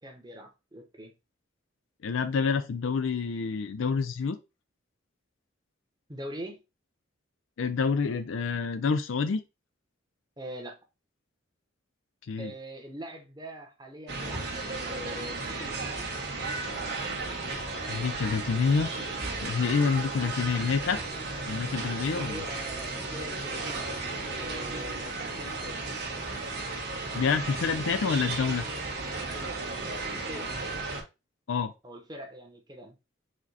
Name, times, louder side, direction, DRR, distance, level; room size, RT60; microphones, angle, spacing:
voice 1, 0.0-1.1 6.1-6.6 10.4-10.8 12.4-16.1 19.8-20.0 22.0-25.9 29.3-30.5 31.8-33.0, equal, 20° right, 0.8 m, -43 dB
voice 2, 2.0-4.4 7.6-9.4 12.3-12.5 17.9-18.9 19.4-21.1 21.4-22.4 27.1-28.6 31.5-31.7, left 5 dB, 70° left, 0.4 m, -27 dB
sound 1, 14.1-31.0, right 3 dB, 50° right, 1.7 m, -34 dB
4.9 x 2.2 x 4.0 m
head